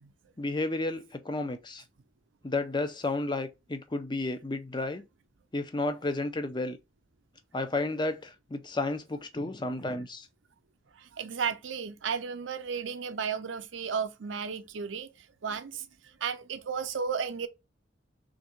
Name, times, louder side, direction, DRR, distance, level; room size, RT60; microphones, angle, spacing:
voice 1, 0.4-1.8 2.4-5.0 5.5-6.8 7.5-10.3, left 2 dB, 25° left, 0.5 m, -32 dB
voice 2, 11.0-15.1 15.4-15.9 16.2-17.5, right 6 dB, 80° right, 0.5 m, -33 dB
3.6 x 2.6 x 4.4 m
head